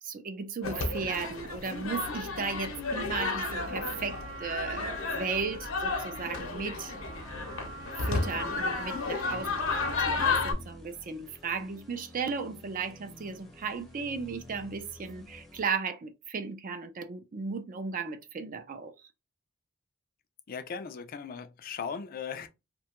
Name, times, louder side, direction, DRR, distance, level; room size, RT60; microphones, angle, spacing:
voice 1, 0.0-6.9 8.0-18.9, right 5 dB, 40° right, 0.4 m, -35 dB
sound 1, 0.6-10.5, left 3 dB, 75° left, 0.7 m, -32 dB
Trumpet, 3.1-10.0, right 3 dB, 80° right, 0.8 m, -45 dB
sound 2, 7.1-15.6, left 1 dB, ahead, 0.6 m, -48 dB
voice 2, 20.5-22.5, left 6 dB, 45° left, 0.4 m, -38 dB
2.8 x 2.2 x 2.9 m
head